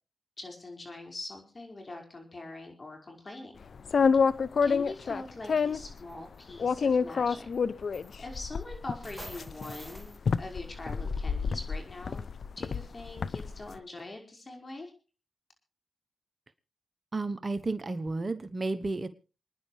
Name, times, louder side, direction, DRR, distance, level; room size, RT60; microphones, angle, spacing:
voice 1, 0.4-3.5 4.6-7.5 8.2-10.1 10.4-12.2 12.6-14.9, left 2 dB, 45° left, 3 dB, 5.3 m, -43 dB
sound 1, 3.8-5.9 6.6-13.6, left 5 dB, 65° left, 0.6 m, -28 dB
sound 2, 5.5-5.6 6.0-6.4 7.5-7.6 7.9-8.6 9.0-10.2, right 1 dB, ahead, 2.5 m, -47 dB
voice 2, 17.1-19.1, right 3 dB, 40° right, 12 dB, 1.1 m, -32 dB
28.0 x 10.0 x 3.3 m, 0.33 s
cardioid pair, 45°, 0 cm